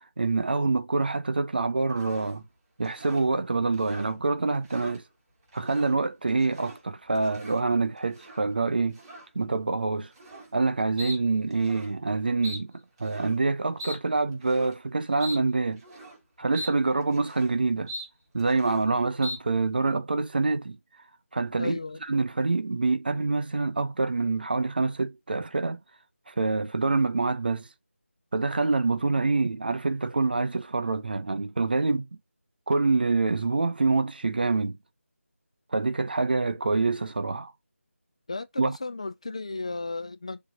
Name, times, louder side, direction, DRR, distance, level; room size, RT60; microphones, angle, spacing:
voice 1, 0.2-2.4 2.8-5.0 5.5-9.0 9.3-10.1 10.5-12.7 13.0-15.8 16.4-17.9 18.3-20.8 21.3-25.8 26.3-27.7 28.3-32.1 32.7-34.8 35.7-37.5 38.6-38.8, right 3 dB, 40° right, 0.7 m, -26 dB
sound 1, 2.0-2.4 2.8-3.3 3.7-4.2 4.5-5.0 5.5-6.0 6.3-6.8 7.2-7.6 8.1-8.4 9.0-9.3 10.1-10.5 11.0-11.2 11.5-11.9 12.4-12.6 13.0-13.4 13.8-14.0 14.4-14.8 15.2-15.4 15.8-16.2 16.5-16.7 17.0-17.5 17.9-18.1 18.4-18.9 19.2-19.4, equal, 20° right, 3.4 m, -41 dB
voice 2, 21.6-22.0 38.3-40.4, left 3 dB, 25° left, 0.4 m, -34 dB
6.7 x 3.1 x 5.0 m
figure-of-eight pair, 170°, 8 cm